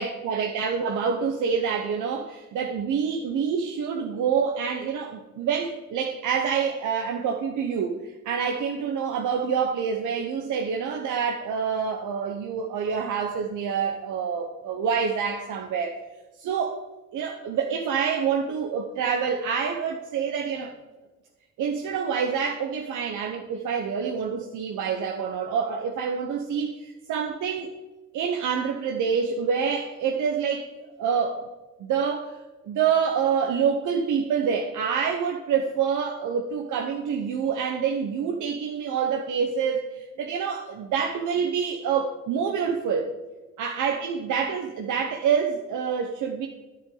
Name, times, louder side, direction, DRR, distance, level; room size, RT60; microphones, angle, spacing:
voice 1, 0.0-16.0 16.4-16.8 17.1-20.7 21.6-27.7 28.1-30.7 31.0-31.4 31.8-32.3 32.7-43.2 43.6-46.5, right 6 dB, 80° right, 2 dB, 1.0 m, -27 dB
10.0 x 9.6 x 3.9 m, 1.2 s
cardioid pair, 90°, 30 cm